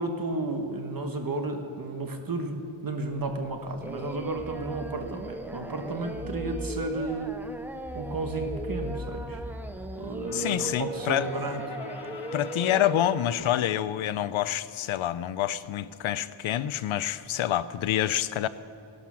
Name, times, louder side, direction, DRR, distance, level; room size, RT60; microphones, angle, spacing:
voice 1, 0.0-7.4 7.9-9.4 10.0-11.6, right 2 dB, 45° right, 5 dB, 1.1 m, -33 dB
sound 1, 3.1-9.9, equal, 20° left, 3.8 m, -42 dB
Singing, 3.8-13.2, right 2 dB, 5° right, 0.4 m, -38 dB
Brass instrument, 9.9-14.1, left 4 dB, 55° left, 1.6 m, -45 dB
voice 2, 10.3-11.3 12.3-18.5, left 11 dB, 80° left, 15 dB, 0.5 m, -27 dB
16.5 x 11.5 x 6.1 m, 2.6 s
wide cardioid pair, 155°, 47 cm